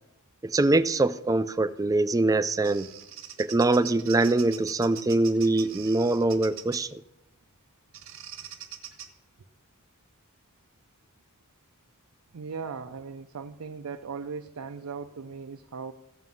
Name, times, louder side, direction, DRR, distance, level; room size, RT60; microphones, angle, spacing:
voice 1, 0.4-2.9 3.4-7.0, right 2 dB, 15° right, 0.4 m, -23 dB
Bird vocalization bird call bird song, 2.2-6.9 7.9-9.1, right 10 dB, 65° right, 1.1 m, -43 dB
voice 2, 12.3-15.9, right 5 dB, 90° right, 0.5 m, -38 dB
15.0 x 5.5 x 7.7 m
head